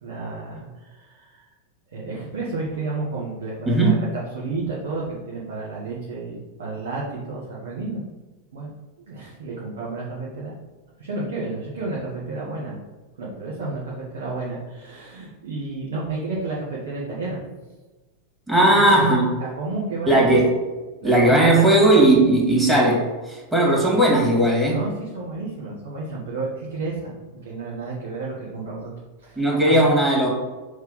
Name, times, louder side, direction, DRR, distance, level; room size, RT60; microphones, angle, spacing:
voice 1, 0.0-1.5 1.9-8.0 8.5-10.5 11.0-12.8 13.2-17.4 18.5-19.0 19.4-20.5 21.0-21.7 24.7-28.9 29.2-29.7, right 3 dB, 60° right, -5 dB, 1.4 m, -31 dB
voice 2, 3.7-4.0 18.5-19.3 20.1-20.5 21.0-24.8 29.4-30.3, right 1 dB, 10° right, -3 dB, 2.1 m, -17 dB
6.3 x 3.3 x 5.4 m, 1.2 s
figure-of-eight pair, 90°, 0 cm